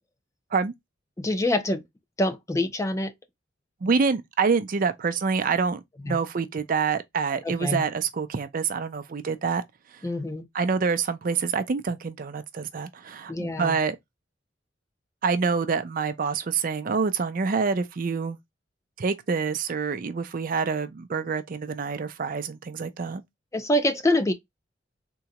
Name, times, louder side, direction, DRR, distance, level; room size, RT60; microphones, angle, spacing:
voice 1, 1.2-1.8 2.2-3.1 6.0-6.2 7.4-7.9 10.0-10.5 13.3-13.8 23.5-24.3, left 1 dB, 15° left, 0.5 m, -25 dB
voice 2, 3.8-9.6 10.5-14.0 15.2-18.4 19.0-23.2, right 5 dB, 50° right, 0.5 m, -26 dB
3.7 x 2.2 x 2.8 m
head